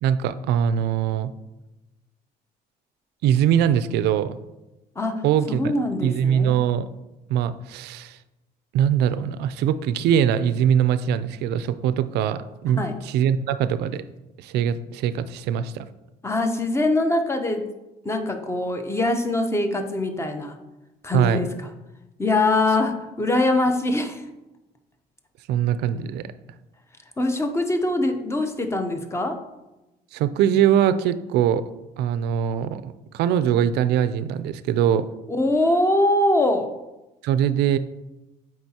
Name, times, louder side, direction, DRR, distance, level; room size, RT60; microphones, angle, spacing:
voice 1, 0.0-1.3 3.2-4.4 5.2-5.7 6.0-6.9 7.3-8.2 8.7-14.0 14.4-15.8 21.1-21.4 25.5-26.2 30.1-31.6 32.0-35.1 37.2-37.8, right 9 dB, 80° right, 13 dB, 0.4 m, -22 dB
voice 2, 5.0-6.5 12.7-13.0 16.2-17.7 18.0-20.6 21.0-21.5 22.2-24.2 27.2-29.4 35.3-36.7, left 2 dB, 15° left, 6 dB, 0.7 m, -23 dB
7.7 x 4.8 x 2.8 m, 1.0 s
cardioid pair, 110°, 17 cm